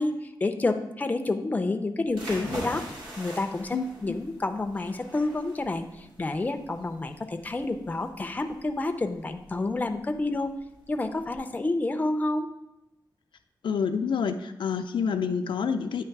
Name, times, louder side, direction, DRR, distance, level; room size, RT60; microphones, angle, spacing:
voice 1, 0.0-2.8 3.2-10.5 10.9-12.5, left 2 dB, 20° left, 7 dB, 0.4 m, -29 dB
sound 1, 2.1-11.4, right 1 dB, 80° right, 2.1 m, -43 dB
voice 2, 13.6-16.0, left 6 dB, 85° left, 8 dB, 0.4 m, -27 dB
9.0 x 3.2 x 4.6 m, 0.92 s
wide cardioid pair, 165°, 8 cm